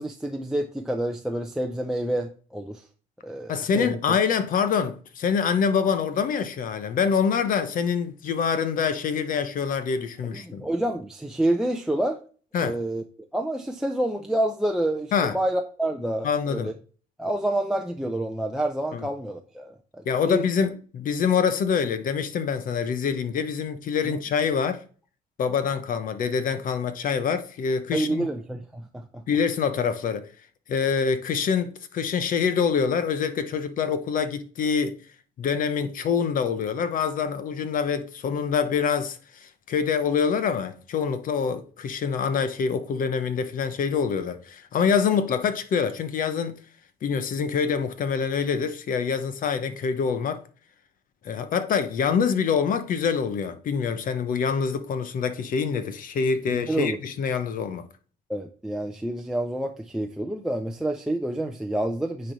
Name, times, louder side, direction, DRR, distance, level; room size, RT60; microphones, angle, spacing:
voice 1, 0.0-2.8 3.2-4.0 10.3-12.2 12.6-13.0 13.3-16.7 17.2-20.4 24.0-24.2 27.9-29.2 56.5-57.0 58.3-62.3, right 1 dB, 5° right, 0.6 m, -28 dB
voice 2, 3.5-10.6 12.5-12.8 15.1-15.4 16.2-16.7 18.9-19.1 20.0-24.8 25.4-28.3 29.3-30.3 30.7-35.0 35.4-46.6 47.0-50.4 51.2-57.8, left 6 dB, 55° left, 1.0 m, -25 dB
9.6 x 3.4 x 4.0 m
cardioid pair, 110°, 17 cm